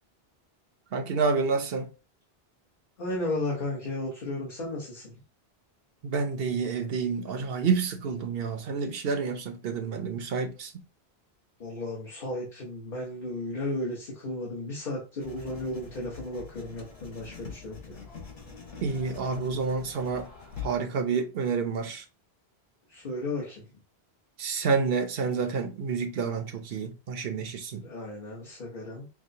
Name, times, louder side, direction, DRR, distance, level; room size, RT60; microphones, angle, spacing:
voice 1, 0.9-1.9 6.0-10.7 18.8-20.3 20.6-22.0 24.4-27.8, right 5 dB, 70° right, 0.9 m, -29 dB
voice 2, 3.0-5.1 11.6-18.1 22.9-23.6 27.8-29.1, left 1 dB, 50° left, 1.2 m, -34 dB
Writing, 15.2-20.8, left 6 dB, 80° left, 1.5 m, -44 dB
5.9 x 2.1 x 2.7 m
omnidirectional pair, 1.1 m